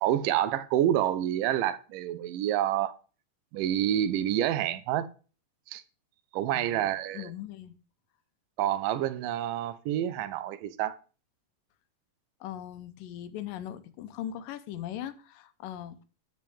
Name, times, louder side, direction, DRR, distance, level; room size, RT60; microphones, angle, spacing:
voice 1, 0.0-2.9 3.5-5.1 5.7-5.8 6.3-7.3 8.6-11.0, right 11 dB, 85° right, 2.2 m, -28 dB
voice 2, 6.5-6.9 7.1-7.7 12.4-16.0, left 11 dB, 90° left, 2.5 m, -39 dB
10.5 x 7.6 x 3.5 m
omnidirectional pair, 3.8 m